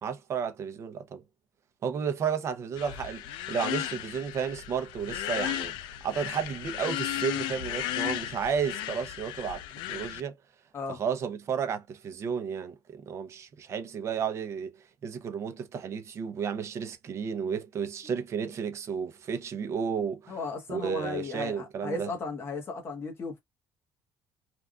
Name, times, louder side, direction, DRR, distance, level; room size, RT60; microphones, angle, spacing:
voice 1, 0.0-1.2 1.8-5.7 6.0-9.6 9.9-10.3 10.9-14.7 15.0-20.4 20.7-22.1, right 7 dB, 35° right, 0.6 m, -32 dB
sound 1, 2.8-10.2, left 13 dB, 80° left, 0.4 m, -35 dB
voice 2, 20.3-23.4, left 3 dB, 30° left, 1.2 m, -35 dB
3.4 x 2.5 x 2.3 m
cardioid pair, 165°, 8 cm